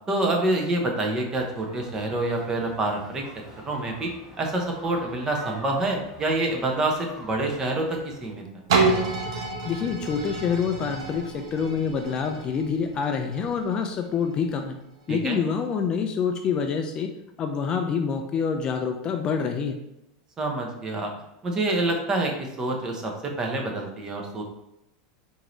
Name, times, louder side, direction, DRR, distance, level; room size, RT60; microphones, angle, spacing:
voice 1, 0.1-3.2 3.6-4.1 4.4-8.4 15.1-15.4 20.4-21.1 21.4-24.4, right 2 dB, 25° right, 2 dB, 0.8 m, -27 dB
sound 1, 1.3-8.3, equal, 5° right, 1.4 m, -46 dB
sound 2, 8.7-14.4 15.0-15.1, right 4 dB, 85° right, 0.7 m, -29 dB
voice 2, 9.6-14.8 15.1-17.1 17.4-19.8, left 6 dB, 30° left, 5 dB, 0.3 m, -26 dB
4.6 x 2.6 x 3.0 m, 0.87 s
supercardioid pair, 135°, 3 cm